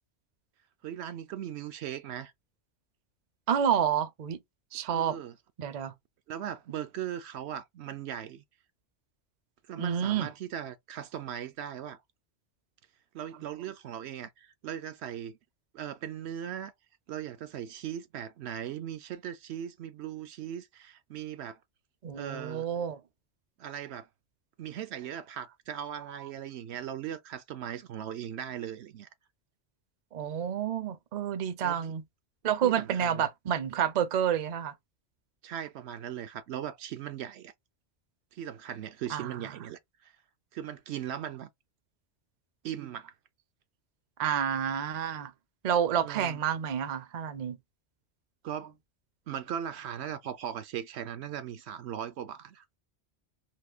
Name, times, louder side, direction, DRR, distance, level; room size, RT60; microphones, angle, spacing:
voice 1, 0.8-2.3 4.9-5.4 6.3-8.4 9.7-12.0 13.1-15.4 15.7-16.7 17.1-21.6 22.1-22.7 23.6-24.1 24.6-29.1 31.6-31.8 32.6-33.3 35.4-37.5 38.3-40.1 40.5-41.5 42.6-43.1 46.0-46.4 48.4-48.7 49.3-52.7, right 10 dB, 75° right, 0.8 m, -39 dB
voice 2, 3.5-4.4 4.7-5.2 5.6-5.9 9.8-10.3 22.0-23.0 30.1-32.0 32.4-34.7 39.1-39.3 44.2-45.3 45.6-47.6, right 9 dB, 50° right, 0.5 m, -29 dB
3.6 x 2.7 x 2.3 m
omnidirectional pair, 1.1 m